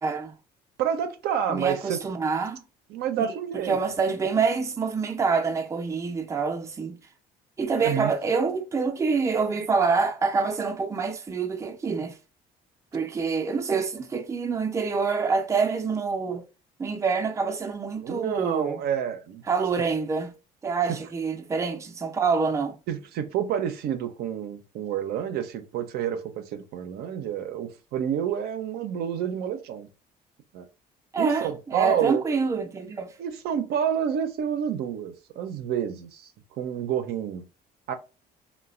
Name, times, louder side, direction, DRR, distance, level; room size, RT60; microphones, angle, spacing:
voice 1, 0.0-0.3 1.5-2.6 3.2-3.3 3.6-7.0 7.6-12.2 12.9-16.4 16.8-18.8 19.5-20.3 20.6-22.8 31.1-33.1, right 5 dB, 20° right, 0.4 m, -26 dB
voice 2, 0.8-2.0 2.9-3.8 7.8-8.1 18.0-19.4 22.9-29.9 30.5-30.7 31.2-32.2 33.2-36.3 36.6-37.5 37.9-38.0, right 8 dB, 70° right, 0.5 m, -29 dB
3.1 x 2.2 x 2.4 m
cardioid pair, 95°, 17 cm